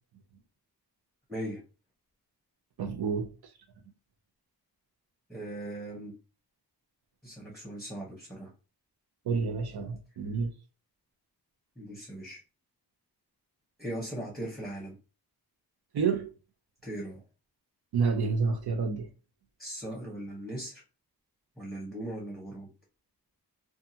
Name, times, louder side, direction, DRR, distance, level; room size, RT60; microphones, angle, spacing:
voice 1, 1.3-1.6 5.3-6.1 7.2-8.5 11.8-12.4 13.8-15.0 16.8-17.2 19.6-20.8 21.6-22.7, right 1 dB, ahead, 0.9 m, -39 dB
voice 2, 2.8-3.3 9.2-10.5 15.9-16.3 17.9-19.1, right 5 dB, 75° right, 0.7 m, -29 dB
2.6 x 2.4 x 2.6 m
cardioid pair, 75°, 39 cm